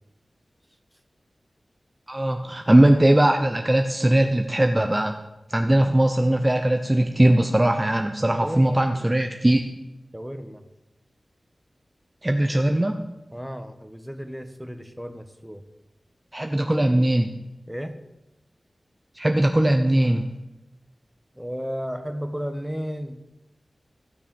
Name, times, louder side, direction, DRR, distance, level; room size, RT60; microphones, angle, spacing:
voice 1, 2.1-5.1 5.5-9.7 12.2-13.0 16.3-17.3 19.2-20.2, right 1 dB, 20° right, 5 dB, 0.9 m, -20 dB
voice 2, 8.3-9.1 10.1-10.6 13.3-15.6 16.9-17.1 17.7-18.0 21.3-23.2, equal, 5° right, 8 dB, 1.3 m, -34 dB
15.5 x 6.8 x 7.0 m, 0.97 s
wide cardioid pair, 55°, 0 cm